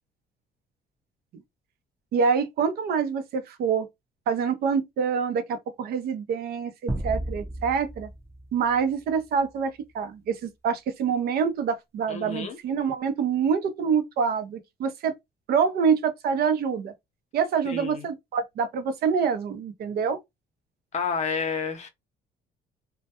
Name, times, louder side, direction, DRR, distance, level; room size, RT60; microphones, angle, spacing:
voice 1, 2.1-3.9 4.3-8.1 8.5-15.1 15.5-16.9 17.3-20.2, right 6 dB, 65° right, 0.6 m, -26 dB
sound 1, 6.9-9.5, right 1 dB, 15° right, 0.6 m, -34 dB
voice 2, 12.1-12.6 17.6-18.1 20.9-21.9, left 5 dB, 45° left, 0.6 m, -30 dB
2.1 x 2.1 x 2.8 m
cardioid pair, 110°, 17 cm